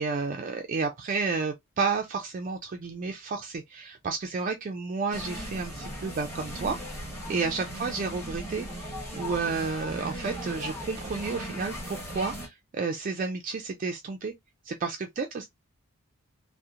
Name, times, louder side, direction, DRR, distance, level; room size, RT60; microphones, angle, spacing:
voice 1, 0.0-6.8 7.3-14.3 14.7-15.5, right 4 dB, 35° right, 0.3 m, -31 dB
sound 1, 5.1-12.5, equal, 10° left, 0.9 m, -38 dB
2.8 x 2.0 x 2.4 m
head